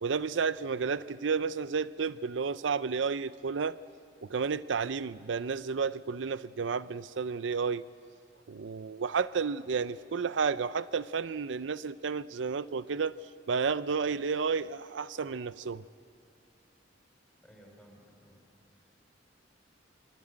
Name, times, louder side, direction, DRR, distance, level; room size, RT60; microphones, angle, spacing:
voice 1, 0.0-3.8 4.2-7.8 8.5-13.1 13.5-15.8, right 5 dB, 80° right, 16 dB, 0.5 m, -31 dB
voice 2, 17.4-18.4 18.7-19.1, equal, ahead, -1 dB, 7.0 m, -58 dB
26.5 x 24.0 x 8.7 m, 2.6 s
head